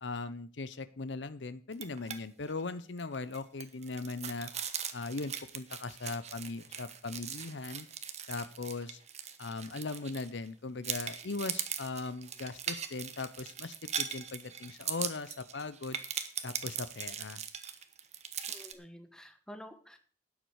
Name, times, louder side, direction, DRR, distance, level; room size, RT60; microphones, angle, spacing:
voice 1, 0.0-4.5 4.9-7.9 8.3-9.0 9.4-16.0 16.4-17.4, left 3 dB, 85° left, 14 dB, 0.8 m, -39 dB
sound 1, 1.7-2.2 2.5-2.6 3.0-10.5 10.8-18.7, right 8 dB, 40° right, 1.2 m, -40 dB
voice 2, 18.5-20.0, equal, 5° left, 7 dB, 1.3 m, -50 dB
12.5 x 9.5 x 4.8 m, 0.41 s
head